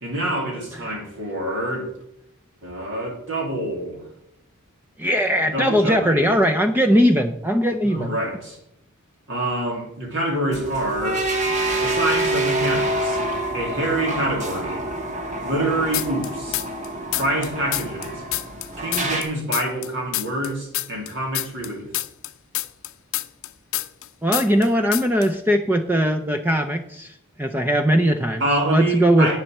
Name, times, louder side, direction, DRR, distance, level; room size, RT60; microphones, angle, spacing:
voice 1, 0.0-1.9 2.6-4.0 5.5-6.5 7.8-8.6 9.3-11.2 11.8-13.2 13.5-14.8 15.4-16.6 17.1-18.2 18.8-21.9 28.4-29.4, right 1 dB, 60° right, -1 dB, 3.0 m, -26 dB
voice 2, 5.0-8.1 24.2-28.4 28.7-29.4, equal, 10° right, 6 dB, 0.5 m, -19 dB
sound 1, 10.5-19.2, right 2 dB, 35° right, 1.5 m, -26 dB
sound 2, 15.9-16.9 17.1-19.9 20.1-24.1 24.3-24.7 24.9-25.3, left 16 dB, 65° left, 0.6 m, -27 dB
9.2 x 7.2 x 6.5 m, 0.77 s
head